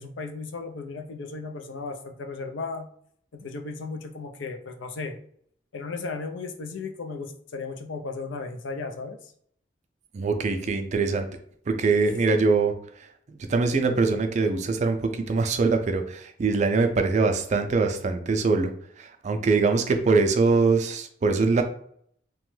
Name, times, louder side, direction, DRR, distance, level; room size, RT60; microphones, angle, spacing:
voice 1, 0.0-2.9 3.4-5.2 5.7-9.3, left 4 dB, 75° left, 6 dB, 0.4 m, -35 dB
voice 2, 10.1-11.3 11.7-12.7 13.3-18.7 19.0-21.6, right 4 dB, 40° right, 7 dB, 0.4 m, -23 dB
2.9 x 2.2 x 3.1 m, 0.63 s
head